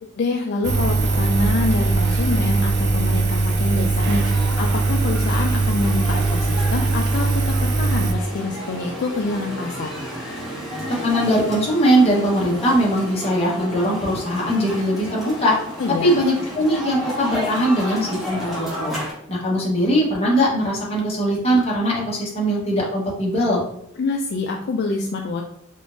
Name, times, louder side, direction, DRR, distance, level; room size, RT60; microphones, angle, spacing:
voice 1, 0.0-9.9 15.8-16.2 24.0-25.4, left 3 dB, 50° left, 1 dB, 0.4 m, -26 dB
Engine, 0.6-8.1, right 3 dB, 55° right, 0.5 m, -20 dB
sound 1, 4.0-19.1, equal, ahead, 1.3 m, -32 dB
voice 2, 11.0-15.5 16.0-18.9 19.3-23.6, equal, 30° left, -4 dB, 1.1 m, -20 dB
3.7 x 3.4 x 2.5 m, 0.72 s
head